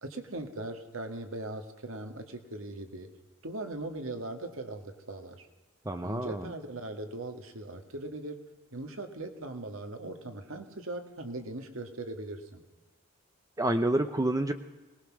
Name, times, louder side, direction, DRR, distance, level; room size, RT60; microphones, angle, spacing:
voice 1, 0.0-3.1 3.4-5.5 6.0-8.4 8.7-12.6, right 2 dB, 70° right, 6 dB, 1.9 m, -39 dB
voice 2, 5.9-6.5 13.6-14.5, right 1 dB, 15° right, 7 dB, 0.6 m, -28 dB
22.5 x 19.0 x 6.2 m, 1.2 s
head